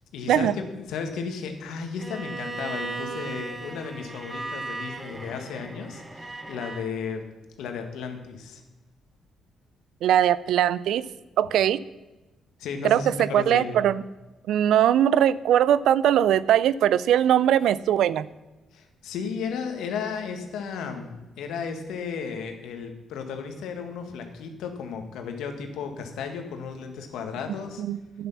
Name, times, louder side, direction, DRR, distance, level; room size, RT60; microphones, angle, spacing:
voice 1, 0.1-7.2 7.6-8.6 12.6-13.8 18.7-27.8, left 6 dB, 85° left, 5 dB, 1.7 m, -34 dB
Bowed string instrument, 2.0-6.9, right 3 dB, 20° right, 1.1 m, -36 dB
voice 2, 10.0-11.1 11.4-11.8 12.8-14.0 14.5-18.3 27.8-28.3, right 10 dB, 80° right, 18 dB, 0.4 m, -21 dB
11.5 x 9.3 x 5.8 m, 1.1 s
cardioid pair, 90°, 0 cm